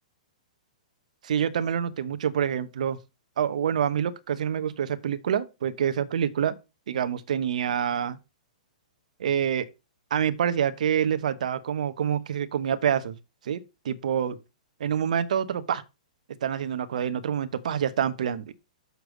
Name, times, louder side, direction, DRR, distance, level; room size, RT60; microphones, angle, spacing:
voice 1, 1.2-3.0 3.4-6.5 6.9-8.2 9.2-9.7 10.1-13.1 13.4-14.4 14.8-15.8 16.4-18.5, right 8 dB, 65° right, 1.0 m, -27 dB
6.8 x 4.6 x 6.3 m
hypercardioid pair, 120°, 4 cm